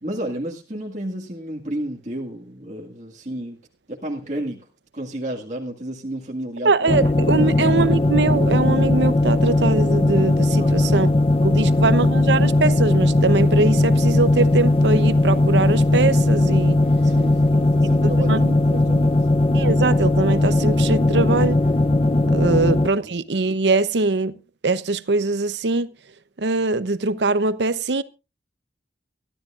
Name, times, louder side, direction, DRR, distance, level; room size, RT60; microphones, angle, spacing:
voice 1, 0.0-3.6 3.9-4.7 4.9-7.5 10.6-11.0 11.6-11.7 17.0-19.2, right 1 dB, 40° right, 1.9 m, -32 dB
voice 2, 6.6-11.1 11.4-16.8 17.8-17.9 18.3-18.4 19.5-21.6 22.3-24.3 24.6-25.9 26.4-28.0, right 3 dB, 85° right, 0.8 m, -22 dB
sound 1, 6.9-22.9, left 2 dB, 30° left, 0.6 m, -18 dB
23.5 x 12.5 x 2.5 m
head